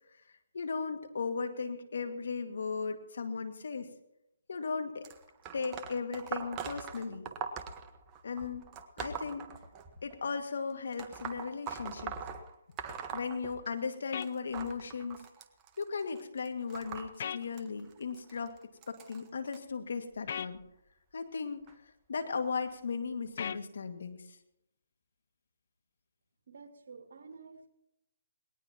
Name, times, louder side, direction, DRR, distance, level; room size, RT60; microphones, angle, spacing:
voice 1, 0.5-3.9 4.5-5.0 5.5-7.2 8.2-8.7 9.0-9.5 10.0-12.2 13.1-15.2 15.8-18.6 18.9-20.6 21.1-21.7 22.1-24.4, left 5 dB, 70° left, 7 dB, 2.0 m, -36 dB
sound 1, 5.0-10.2 10.9-13.9 14.2-19.6 20.4-20.6 21.7-21.8 22.7-22.8 23.5-23.6, right 6 dB, 20° right, 1.3 m, -43 dB
sound 2, 14.1-14.3 17.2-17.4 20.3-20.5 23.4-23.6, left 8 dB, 55° left, 0.5 m, -36 dB
voice 2, 26.5-27.7, right 4 dB, 65° right, 3 dB, 2.9 m, -50 dB
20.0 x 18.5 x 3.0 m, 0.85 s
hypercardioid pair, 150°, 0 cm